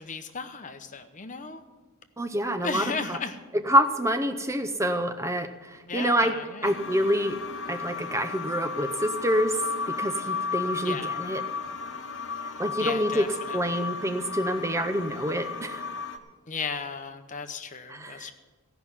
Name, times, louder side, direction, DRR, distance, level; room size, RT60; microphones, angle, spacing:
voice 1, 0.0-1.6 2.6-3.4 5.9-6.7 10.8-11.1 12.8-13.9 16.5-18.3, left 5 dB, 35° left, 8 dB, 0.8 m, -35 dB
voice 2, 2.2-3.2 3.5-7.4 7.7-9.6 9.9-11.4 12.6-15.8 17.9-18.3, equal, 15° right, 7 dB, 0.6 m, -27 dB
sound 1, 6.6-16.2, left 4 dB, 60° left, 1.1 m, -34 dB
16.0 x 5.8 x 9.8 m, 1.3 s
head